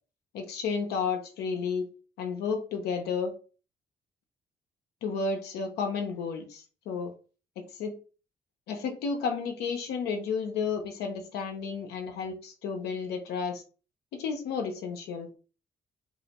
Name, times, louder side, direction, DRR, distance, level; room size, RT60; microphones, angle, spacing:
voice 1, 0.3-1.9 2.2-3.3 5.0-7.1 7.6-7.9 8.7-13.6 14.1-15.4, left 5 dB, 85° left, 4 dB, 0.4 m, -32 dB
2.4 x 2.0 x 2.8 m, 0.36 s
supercardioid pair, 60°, 17 cm